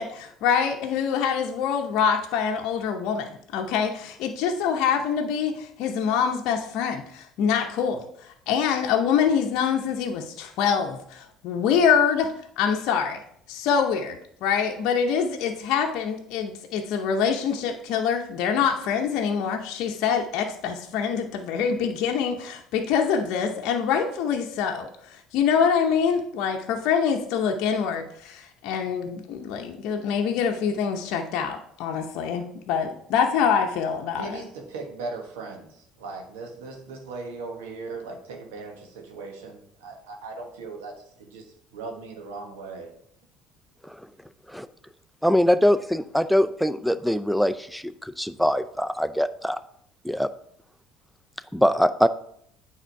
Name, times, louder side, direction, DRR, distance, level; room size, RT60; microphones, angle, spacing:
voice 1, 0.0-13.2 13.5-34.4, left 7 dB, 70° left, 3 dB, 0.7 m, -25 dB
voice 2, 34.2-41.5 41.7-42.9, right 3 dB, 80° right, 2 dB, 1.4 m, -38 dB
voice 3, 45.2-49.6 50.0-50.3 51.5-52.1, equal, ahead, 11 dB, 0.5 m, -23 dB
9.0 x 3.7 x 4.6 m, 0.68 s
hypercardioid pair, 65°, 0 cm